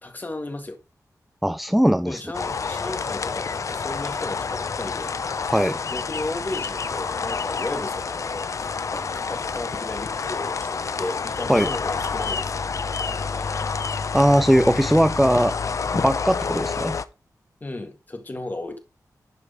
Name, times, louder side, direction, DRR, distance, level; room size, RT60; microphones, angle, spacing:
voice 1, 0.0-0.8 2.0-12.7 13.0-13.6 17.6-18.8, left 2 dB, 30° left, 1.8 m, -35 dB
voice 2, 1.4-2.2 5.5-5.8 11.5-11.7 14.1-15.6 15.9-17.0, equal, ahead, 0.4 m, -19 dB
sound 1, 2.3-17.0, left 5 dB, 55° left, 0.6 m, -28 dB
11.0 x 5.0 x 5.0 m
wide cardioid pair, 140°, 6 cm